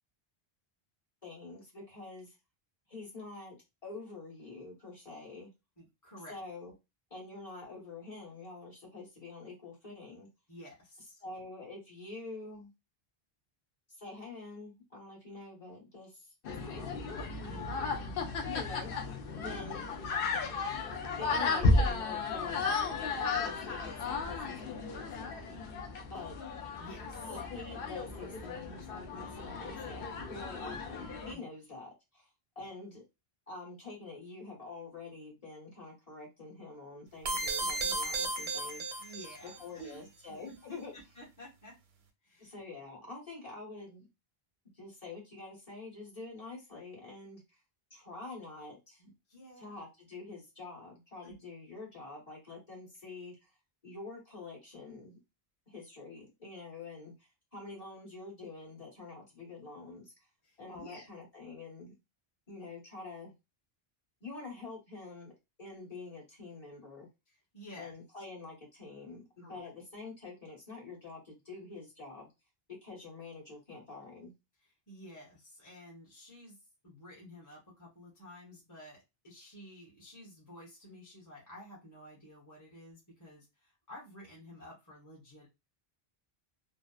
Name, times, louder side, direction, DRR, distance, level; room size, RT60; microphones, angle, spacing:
voice 1, 1.2-2.4 2.9-3.6 3.8-5.5 6.3-6.7 7.1-10.3 11.2-12.7 14.0-17.0 17.4-17.7 18.4-19.9 21.1-25.6 26.1-26.4 27.3-32.3 32.5-33.0 33.5-38.9 39.4-40.9 42.4-44.1 44.7-47.6 47.9-49.1 49.6-53.5 53.8-55.2 55.7-60.1 60.6-61.9 62.5-63.3 64.2-65.3 65.6-67.1 67.8-72.3 72.8-74.3, left 3 dB, 35° left, -5 dB, 1.3 m, -46 dB
voice 2, 5.8-6.4 10.5-11.2 17.4-18.2 26.8-27.3 31.3-31.5 32.6-32.7 39.0-41.7 42.2-42.5 49.3-49.8 51.2-51.3 60.4-61.1 67.3-68.0 69.4-69.7 74.9-76.6 76.8-85.5, equal, 20° left, -5 dB, 0.9 m, -52 dB
sound 1, 16.4-31.3, left 3 dB, 65° left, 0.7 m, -34 dB
sound 2, 37.3-39.6, right 3 dB, 85° right, 0.8 m, -34 dB
2.7 x 2.0 x 2.3 m, 0.24 s
omnidirectional pair, 1.0 m